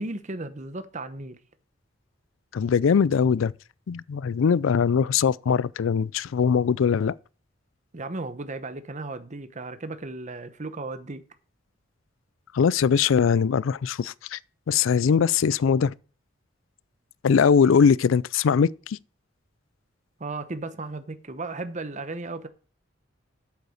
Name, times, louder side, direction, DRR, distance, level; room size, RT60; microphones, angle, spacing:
voice 1, 0.0-1.4 7.9-11.2 20.2-22.5, right 2 dB, 40° right, 0.9 m, -35 dB
voice 2, 2.5-3.5 3.9-7.1 12.5-14.4 14.7-15.9 17.2-19.0, left 6 dB, 80° left, 0.4 m, -21 dB
8.3 x 8.1 x 6.5 m
head